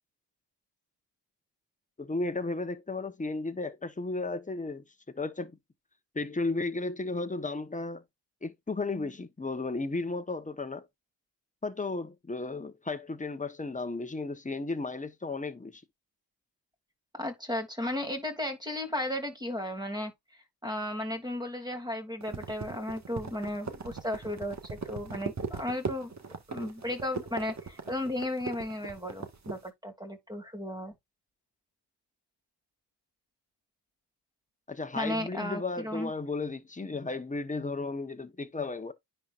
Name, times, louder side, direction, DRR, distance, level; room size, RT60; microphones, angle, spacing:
voice 1, 2.0-5.6 6.1-8.0 8.4-10.9 11.6-15.8 34.7-38.9, left 3 dB, 15° left, 1.1 m, -34 dB
voice 2, 17.2-20.1 20.6-26.1 26.5-30.9 34.9-36.1, left 1 dB, 10° right, 2.9 m, -34 dB
sound 1, 22.2-29.6, right 5 dB, 40° right, 1.8 m, -38 dB
9.9 x 4.5 x 2.5 m
cardioid pair, 55°, 43 cm